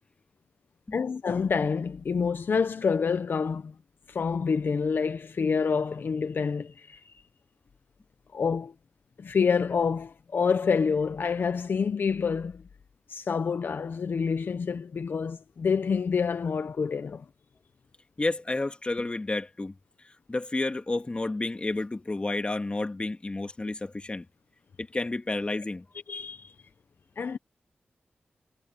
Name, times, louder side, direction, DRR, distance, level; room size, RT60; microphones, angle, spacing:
voice 1, 0.9-3.7 4.1-7.1 8.3-8.7 9.2-12.6 13.1-17.2 26.1-26.5 27.2-27.4, left 5 dB, 65° left, 0.9 m, -27 dB
voice 2, 18.2-19.7 20.3-24.3 24.8-25.8, left 2 dB, 30° left, 2.0 m, -30 dB
cardioid pair, 75°, 4 cm